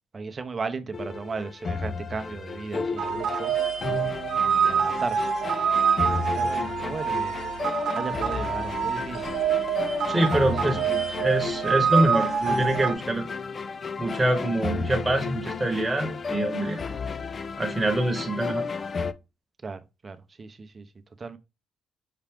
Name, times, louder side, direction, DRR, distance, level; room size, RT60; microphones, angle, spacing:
voice 1, 0.1-3.5 4.4-5.3 6.1-7.3 7.9-9.3 10.6-11.0 19.6-20.9 21.2-21.4, right 4 dB, 35° right, 0.7 m, -36 dB
sound 1, 0.9-19.1, left 5 dB, 40° left, 0.4 m, -33 dB
sound 2, 3.0-12.9, right 7 dB, 80° right, 0.7 m, -26 dB
voice 2, 10.1-10.8 11.2-13.2 14.0-16.8 17.6-18.6, right 1 dB, 15° right, 1.1 m, -25 dB
5.7 x 2.4 x 3.5 m
cardioid pair, 90°, 0 cm